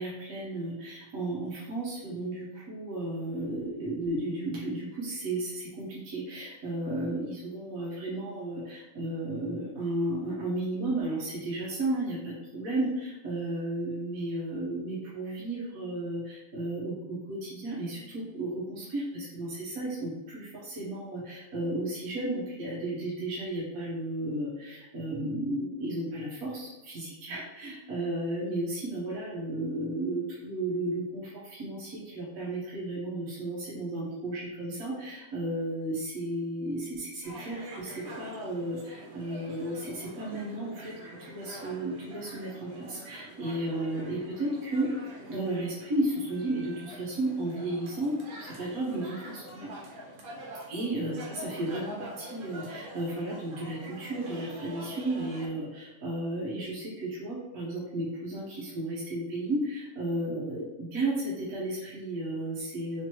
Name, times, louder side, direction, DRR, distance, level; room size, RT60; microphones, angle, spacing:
voice 1, 0.0-49.7 50.7-63.0, right 1 dB, 50° right, -7 dB, 1.2 m, -33 dB
sound 1, 37.2-55.5, right 1 dB, 70° right, 1.7 m, -46 dB
4.4 x 2.8 x 3.0 m, 1.0 s
omnidirectional pair, 2.4 m